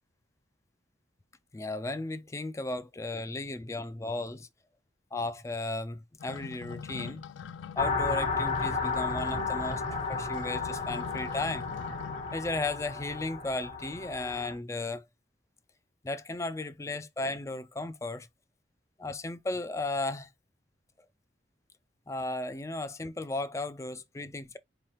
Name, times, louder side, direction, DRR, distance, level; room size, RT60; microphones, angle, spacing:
voice 1, 1.5-4.5 5.1-7.2 7.8-11.7 12.3-15.0 16.0-18.3 19.0-20.3 22.1-24.6, left 2 dB, 15° left, 0.3 m, -35 dB
sound 1, 6.2-12.4, left 7 dB, 85° left, 0.4 m, -44 dB
sound 2, 7.8-14.5, left 4 dB, 35° left, 0.9 m, -33 dB
4.7 x 3.0 x 2.9 m
head